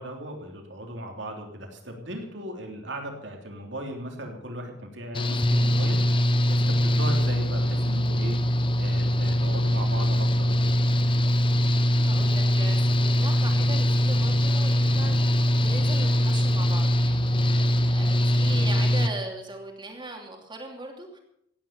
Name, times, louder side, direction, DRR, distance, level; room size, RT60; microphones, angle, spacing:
voice 1, 0.0-8.4 8.8-10.7, right 1 dB, 70° right, 2 dB, 3.3 m, -37 dB
Engine / Mechanical fan, 5.1-19.1, equal, 25° left, 0.8 m, -22 dB
voice 2, 12.0-21.2, right 2 dB, 25° right, 2 dB, 2.8 m, -39 dB
16.0 x 9.6 x 7.3 m, 0.76 s
head